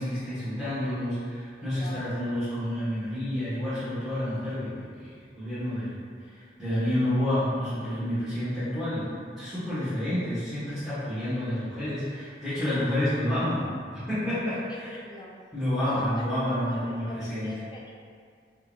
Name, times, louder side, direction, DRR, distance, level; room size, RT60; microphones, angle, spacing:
voice 1, 0.0-6.0 6.3-9.1 9.4-14.9 15.5-17.5, left 1 dB, ahead, -16 dB, 1.4 m, -29 dB
voice 2, 1.8-2.1 14.7-15.3 15.7-18.0, left 1 dB, 25° left, -2 dB, 0.5 m, -41 dB
3.8 x 3.3 x 2.4 m, 2.1 s
head